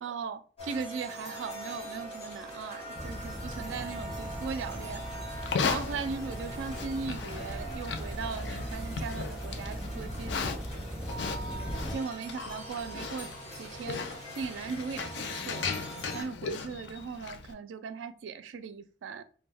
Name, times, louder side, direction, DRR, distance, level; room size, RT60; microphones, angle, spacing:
voice 1, 0.0-5.0 5.7-10.6 11.9-13.3 13.6-15.7 16.1-19.2, right 5 dB, 85° right, 0.3 m, -38 dB
sound 1, 0.6-16.2, right 1 dB, 35° left, 1.1 m, -43 dB
sound 2, 2.9-12.0, equal, ahead, 0.5 m, -39 dB
Livestock farm animals working animals, 5.3-17.5, left 5 dB, 65° left, 0.4 m, -37 dB
2.2 x 2.1 x 3.3 m
head